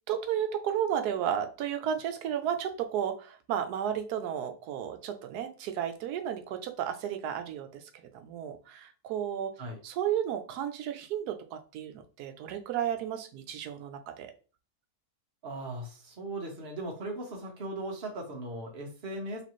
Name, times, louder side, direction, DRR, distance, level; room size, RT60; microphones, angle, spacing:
voice 1, 0.1-7.8 8.1-9.5 9.8-14.3, right 9 dB, 90° right, 6 dB, 1.1 m, -33 dB
voice 2, 15.4-19.4, right 1 dB, 40° right, 0 dB, 1.3 m, -38 dB
4.2 x 3.2 x 3.0 m, 0.36 s
omnidirectional pair, 1.6 m